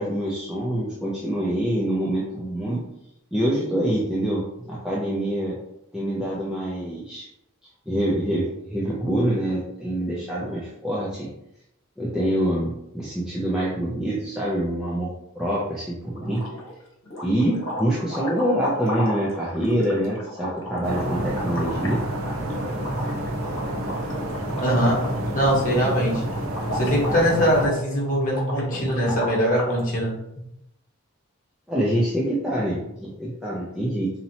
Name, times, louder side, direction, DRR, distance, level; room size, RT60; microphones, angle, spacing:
voice 1, 0.0-2.8 3.3-5.6 5.9-7.3 7.9-11.3 12.0-16.5 17.2-22.0 31.7-34.1, right 1 dB, 5° right, -7 dB, 0.5 m, -25 dB
sound 1, 16.1-16.7 17.1-29.8, left 1 dB, 65° left, 1.1 m, -34 dB
sound 2, 20.8-27.7, right 1 dB, 85° right, 0.8 m, -29 dB
voice 2, 24.6-25.1 25.3-26.2 26.7-30.1, equal, 35° left, -4 dB, 1.3 m, -22 dB
4.3 x 2.8 x 2.8 m, 0.82 s
head